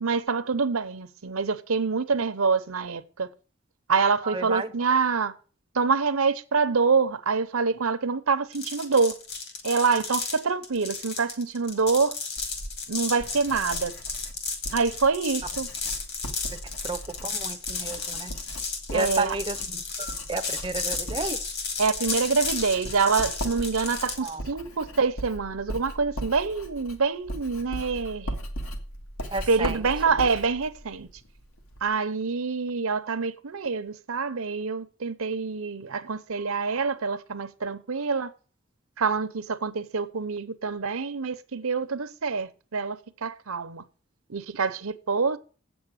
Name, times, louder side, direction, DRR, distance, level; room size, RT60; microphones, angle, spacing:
voice 1, 0.0-3.3 3.9-5.3 5.7-9.2 9.6-12.2 12.9-13.9 14.7-15.7 18.9-19.4 21.8-28.4 29.5-31.1 31.8-38.3 39.0-43.8 44.3-45.4, right 4 dB, 80° right, 0.8 m, -26 dB
voice 2, 4.2-4.7 16.5-16.6 16.8-18.3 18.9-21.4 24.2-24.4 29.3-29.8, right 3 dB, 20° right, 0.6 m, -32 dB
sound 1, 8.5-24.3, left 4 dB, 50° left, 2.3 m, -33 dB
Writing, 12.4-31.9, equal, 75° left, 1.8 m, -39 dB
8.2 x 7.1 x 6.4 m
head